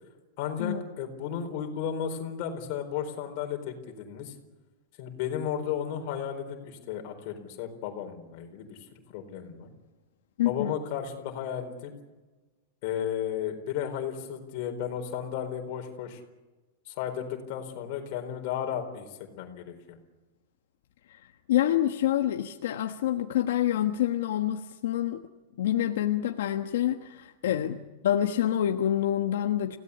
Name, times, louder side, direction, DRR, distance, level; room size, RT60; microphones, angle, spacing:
voice 1, 0.4-4.3 5.0-8.8 9.1-9.7 10.4-11.9 12.8-16.2 16.9-20.0 27.4-27.6, left 8 dB, 40° left, 4 dB, 4.3 m, -34 dB
voice 2, 10.4-10.8 21.1-21.2 21.5-25.2 25.6-27.8 28.0-29.8, left 11 dB, 70° left, 4 dB, 1.4 m, -27 dB
29.5 x 17.0 x 8.4 m, 1.2 s
supercardioid pair, 175°, 0 cm